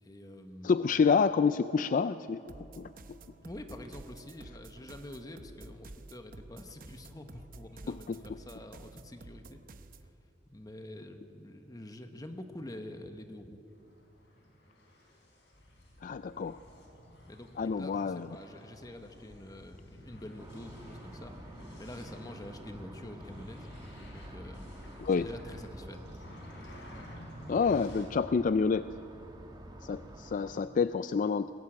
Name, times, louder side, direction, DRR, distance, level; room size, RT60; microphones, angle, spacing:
voice 1, 0.0-0.8 3.4-9.6 10.5-13.6 17.2-21.3 21.8-23.7 23.9-26.0, left 1 dB, 20° left, 6 dB, 1.0 m, -47 dB
voice 2, 0.6-2.4 2.8-2.9 7.9-8.2 16.0-16.6 17.6-18.3 25.0-25.3 27.5-28.9 29.8-31.5, left 5 dB, 45° left, 13 dB, 0.3 m, -28 dB
sound 1, 2.5-10.1, right 2 dB, 50° right, 0.8 m, -51 dB
sound 2, 13.7-28.1, equal, 70° left, 4.5 m, -51 dB
sound 3, 20.4-30.5, right 1 dB, 25° right, 1.6 m, -50 dB
20.5 x 15.0 x 8.7 m, 2.8 s
head